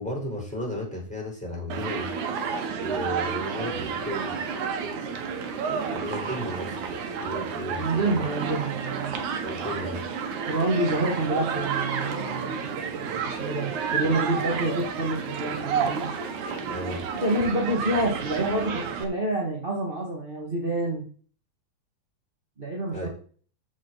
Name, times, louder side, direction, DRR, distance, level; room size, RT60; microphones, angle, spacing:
voice 1, 0.0-2.1 2.8-4.3 5.9-6.8 7.2-8.2 9.4-10.1 16.7-17.0 22.9-23.1, equal, ahead, -2 dB, 4.6 m, -34 dB
Human group actions, 1.7-19.0, right 6 dB, 65° right, 2.7 m, -31 dB
voice 2, 7.8-9.1 10.5-16.1 17.2-21.0 22.6-23.1, right 2 dB, 20° right, -2 dB, 1.6 m, -28 dB
14.0 x 6.3 x 4.2 m, 0.43 s
omnidirectional pair, 4.1 m